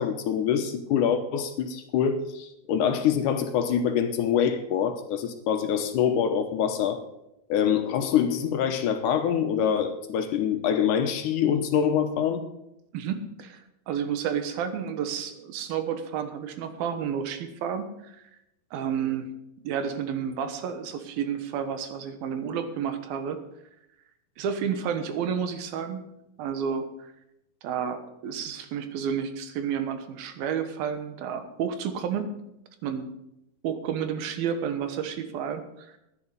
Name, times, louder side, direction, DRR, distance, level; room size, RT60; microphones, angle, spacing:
voice 1, 0.0-7.0 7.5-12.4, left 8 dB, 70° left, 7 dB, 2.2 m, -25 dB
voice 2, 12.9-18.3 18.7-19.3 19.6-23.4 24.4-26.1 26.4-27.1 27.6-32.3 32.8-33.1 33.6-36.0, right 7 dB, 80° right, 9 dB, 3.0 m, -31 dB
11.0 x 10.0 x 6.7 m, 0.84 s
omnidirectional pair, 4.2 m